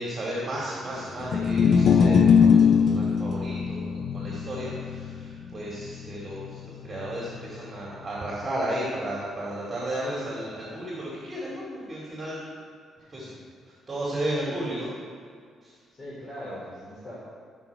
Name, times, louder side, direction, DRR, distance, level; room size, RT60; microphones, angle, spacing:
voice 1, 0.0-12.4 13.1-13.3 13.9-15.0 15.6-15.7, right 1 dB, 30° right, -5 dB, 2.3 m, -33 dB
sound 1, 1.2-7.6, left 6 dB, 65° left, 0.4 m, -22 dB
voice 2, 13.0-13.4 15.9-17.1, equal, 35° left, -8 dB, 2.9 m, -41 dB
12.5 x 6.1 x 4.6 m, 2.1 s
cardioid pair, 90°, 0 cm